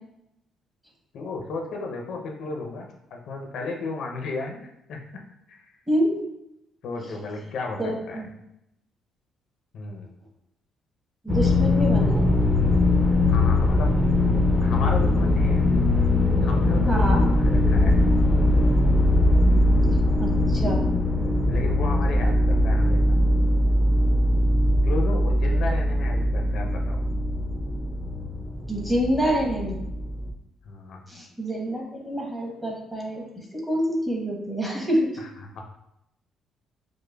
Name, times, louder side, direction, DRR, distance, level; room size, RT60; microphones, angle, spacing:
voice 1, 1.1-5.0 5.5-5.7 6.8-8.2 9.7-10.1 13.3-13.9 14.6-15.7 16.4-18.0 21.5-23.2 24.8-27.0 30.6-31.0 35.2-35.6, left 3 dB, 65° left, 2 dB, 0.5 m, -34 dB
voice 2, 5.9-6.2 7.8-8.3 11.2-12.4 16.9-17.2 20.2-20.9 28.7-29.8 31.1-33.3 33.5-35.2, equal, 10° right, -2 dB, 0.9 m, -27 dB
sound 1, 11.3-30.3, left 1 dB, 15° left, 0.4 m, -21 dB
4.9 x 2.0 x 2.2 m, 0.82 s
cardioid pair, 120°, 0 cm